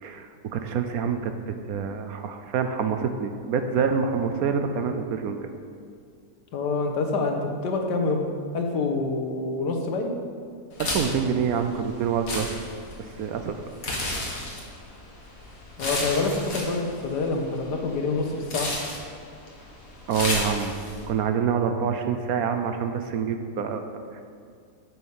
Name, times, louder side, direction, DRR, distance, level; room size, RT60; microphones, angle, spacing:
voice 1, 0.0-5.5 10.8-12.5 13.0-13.6 20.1-20.8 21.1-23.8 24.1-24.2, right 6 dB, 70° right, 7 dB, 1.0 m, -26 dB
voice 2, 6.5-8.3 8.5-10.1 15.8-18.7, left 3 dB, 85° left, 3 dB, 1.7 m, -26 dB
sound 1, 10.7-21.1, left 2 dB, 55° left, 2.0 m, -33 dB
8.7 x 7.6 x 5.6 m, 2.2 s
omnidirectional pair, 1.8 m